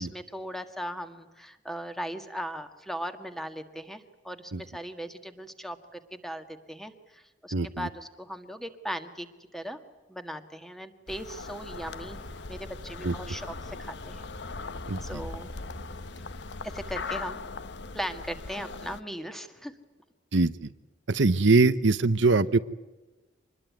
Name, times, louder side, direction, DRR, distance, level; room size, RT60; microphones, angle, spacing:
voice 1, 0.0-9.3 9.5-9.8 10.1-12.2 12.5-14.3 15.0-15.5 16.7-17.4 17.9-19.7, equal, ahead, 8 dB, 1.7 m, -38 dB
voice 2, 7.5-7.9 13.0-13.1 14.9-15.2 20.3-20.7 21.1-22.6, right 3 dB, 70° right, 12 dB, 0.9 m, -23 dB
sound 1, 11.1-19.0, left 4 dB, 60° left, 1.0 m, -40 dB
sound 2, 11.7-17.0, left 1 dB, 90° left, 3.0 m, -45 dB
26.0 x 21.0 x 9.5 m, 1.1 s
head